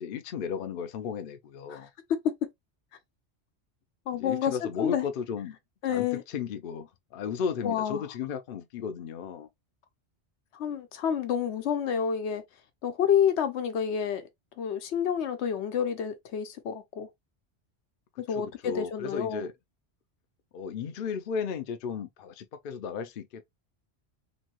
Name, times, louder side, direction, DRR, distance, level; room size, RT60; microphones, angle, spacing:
voice 1, 0.0-1.9 4.1-5.6 5.9-9.5 18.3-19.5 20.5-23.4, left 7 dB, 60° left, 0.7 m, -34 dB
voice 2, 2.1-2.5 4.1-5.0 5.8-6.2 7.6-8.0 10.5-12.4 12.8-14.3 14.6-17.1 18.2-19.4, left 8 dB, 80° left, 1.0 m, -29 dB
3.0 x 2.7 x 2.9 m
omnidirectional pair, 1.1 m